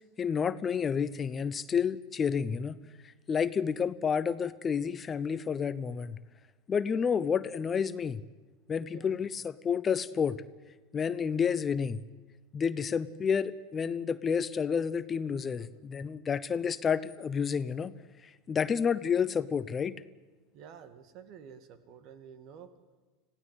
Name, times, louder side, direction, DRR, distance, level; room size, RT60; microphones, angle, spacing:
voice 1, 0.2-2.8 3.3-6.2 6.7-8.2 8.7-10.4 10.9-12.0 12.5-17.9 18.5-19.9, left 6 dB, 25° left, 16 dB, 0.7 m, -30 dB
voice 2, 8.9-9.2 15.6-15.8 20.5-22.7, right 7 dB, 50° right, 11 dB, 2.0 m, -50 dB
26.5 x 16.5 x 8.2 m, 1.3 s
figure-of-eight pair, 85°, 0 cm